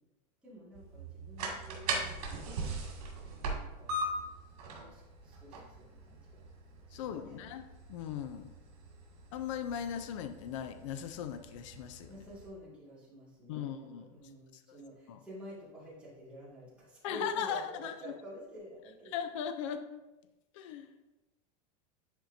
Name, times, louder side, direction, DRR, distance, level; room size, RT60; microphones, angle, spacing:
voice 1, 0.4-2.7 3.2-4.0 4.7-6.4 6.9-7.4 12.1-19.2, equal, 5° right, -9 dB, 2.0 m, -49 dB
sound 1, 0.7-12.5, right 2 dB, 65° right, 2.3 m, -41 dB
voice 2, 6.9-8.5 9.3-12.1 13.5-14.0 14.5-14.8 15.1-15.2 17.0-18.2 19.1-20.0 20.5-20.9, left 8 dB, 50° left, 9 dB, 0.5 m, -38 dB
10.5 x 4.4 x 2.7 m, 1.0 s
supercardioid pair, 180°, 20 cm